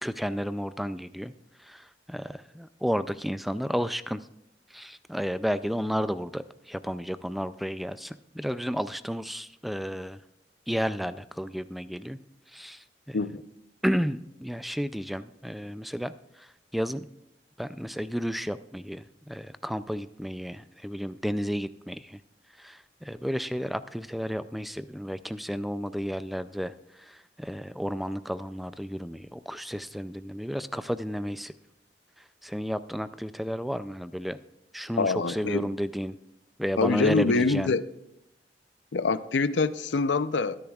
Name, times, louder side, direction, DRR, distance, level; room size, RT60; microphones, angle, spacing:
voice 1, 0.0-1.3 1.6-4.2 4.7-10.2 10.7-12.2 12.5-13.2 13.8-16.1 16.4-16.5 16.7-17.1 17.6-22.2 22.6-31.5 32.4-34.4 34.7-36.2 36.6-37.7, equal, ahead, 0.3 m, -32 dB
voice 2, 35.0-35.7 36.8-37.8 38.9-40.6, left 4 dB, 85° left, 0.6 m, -25 dB
22.0 x 10.5 x 2.4 m
head